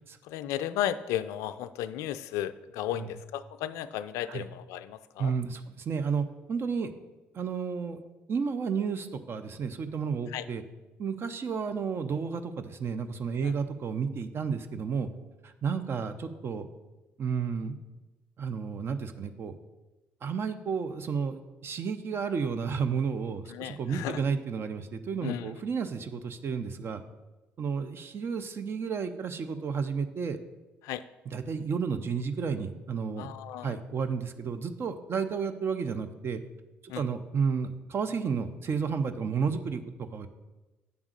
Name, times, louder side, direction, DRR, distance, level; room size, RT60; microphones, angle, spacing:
voice 1, 0.2-5.3 10.3-10.5 13.4-13.5 23.5-24.2 25.2-25.6 30.8-31.0 33.2-33.8 36.9-37.0, left 12 dB, 75° left, 13 dB, 0.4 m, -34 dB
voice 2, 5.2-6.9 7.3-8.0 8.3-10.6 11.0-15.1 15.4-16.7 17.2-17.8 18.4-19.5 20.2-27.0 27.6-30.4 31.3-33.3 33.6-36.4 36.8-40.3, right 6 dB, 50° right, 9 dB, 0.7 m, -32 dB
8.2 x 3.6 x 6.5 m, 1.1 s
hypercardioid pair, 60°, 5 cm